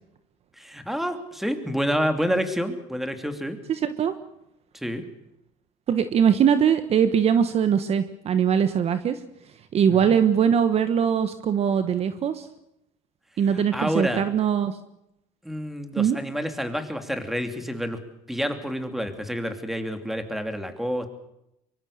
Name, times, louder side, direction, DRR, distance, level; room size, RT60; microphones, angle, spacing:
voice 1, 0.6-3.6 4.7-5.0 9.9-10.1 13.5-14.2 15.4-18.0 18.3-21.1, equal, ahead, 7 dB, 2.9 m, -28 dB
voice 2, 3.7-4.1 5.9-9.2 9.7-12.5 13.4-14.8 16.0-16.2, right 8 dB, 40° right, 11 dB, 1.3 m, -21 dB
23.5 x 23.5 x 6.7 m, 0.84 s
cardioid pair, 115°, 15 cm